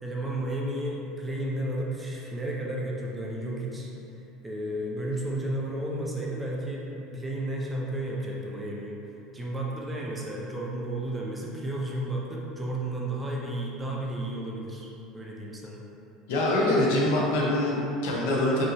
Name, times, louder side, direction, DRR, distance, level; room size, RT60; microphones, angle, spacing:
voice 1, 0.0-3.9 4.4-9.0 9.3-14.9 15.1-15.8, right 1 dB, 10° right, -3 dB, 0.4 m, -32 dB
voice 2, 16.3-18.7, left 1 dB, 75° left, -4 dB, 0.8 m, -24 dB
5.2 x 2.8 x 2.8 m, 2.8 s
cardioid pair, 170°, 0 cm